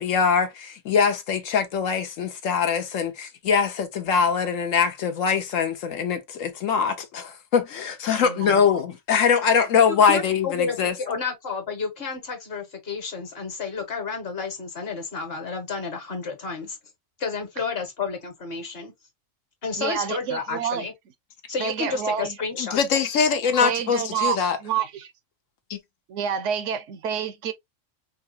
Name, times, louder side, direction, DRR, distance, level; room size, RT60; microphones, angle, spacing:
voice 1, 0.0-10.9 22.6-24.6 25.7-25.8, left 6 dB, 80° left, 1.2 m, -22 dB
voice 2, 8.2-8.6 19.8-20.9 21.6-22.4 23.6-25.1 26.1-27.5, right 8 dB, 70° right, 0.9 m, -28 dB
voice 3, 10.0-16.8 17.2-18.9 19.6-20.9 21.5-22.8, left 5 dB, 50° left, 1.4 m, -31 dB
4.7 x 2.4 x 2.7 m
omnidirectional pair, 1.3 m